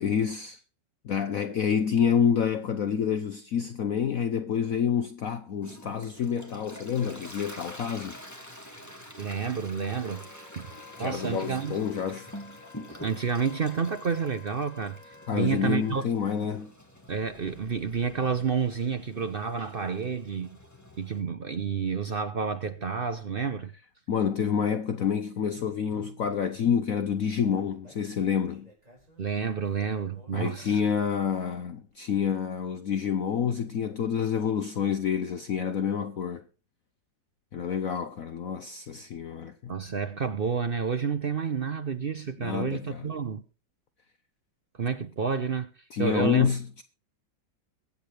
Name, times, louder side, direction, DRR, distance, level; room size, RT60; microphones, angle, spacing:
voice 1, 0.0-0.6 1.0-8.2 11.0-12.3 15.3-16.7 24.1-28.7 30.3-36.4 37.5-39.7 42.4-43.1 45.9-46.8, left 7 dB, 60° left, 1.0 m, -28 dB
Toilet flush, 5.6-21.2, equal, 10° left, 1.9 m, -47 dB
voice 2, 9.2-10.3 10.6-10.7 11.0-11.8 12.9-16.0 17.1-20.6 21.0-23.7 29.2-30.8 39.7-43.4 44.8-45.7 46.0-46.5, right 6 dB, 65° right, 0.5 m, -30 dB
Wind instrument woodwind instrument, 10.0-16.1, left 5 dB, 85° left, 2.8 m, -51 dB
Human voice, 27.4-31.0 31.3-31.4 31.9-32.0, equal, 20° right, 5.2 m, -54 dB
23.0 x 8.4 x 3.3 m
omnidirectional pair, 2.0 m